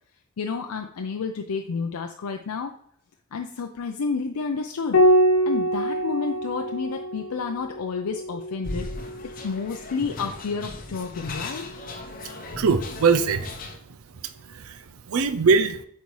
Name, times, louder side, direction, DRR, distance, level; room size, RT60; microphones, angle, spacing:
voice 1, 0.4-2.7 3.3-5.0 5.5-8.9 9.4-11.7, left 5 dB, 90° left, 4 dB, 0.5 m, -30 dB
Piano, 4.9-9.8 11.4-12.2, equal, 65° left, 1.0 m, -25 dB
sound 1, 8.6-13.8, left 2 dB, 40° left, 0.7 m, -37 dB
voice 2, 12.2-13.5 14.2-15.8, right 5 dB, 75° right, 11 dB, 0.5 m, -23 dB
8.0 x 4.2 x 3.1 m, 0.65 s
head